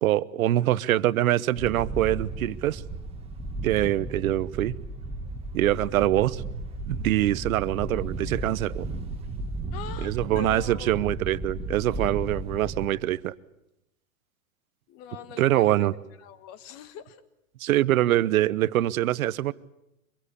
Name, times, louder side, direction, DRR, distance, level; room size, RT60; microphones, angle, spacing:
voice 1, 0.0-2.8 3.6-4.8 5.5-6.4 6.9-8.8 10.0-13.3 15.4-15.9 17.6-19.5, right 14 dB, 75° right, 1.0 m, -24 dB
Wind, 1.6-12.9, right 2 dB, 15° right, 1.7 m, -34 dB
voice 2, 9.7-11.2 14.9-15.9 16.2-17.2, left 8 dB, 35° left, 1.7 m, -42 dB
25.0 x 22.5 x 8.4 m
hypercardioid pair, 145°, 42 cm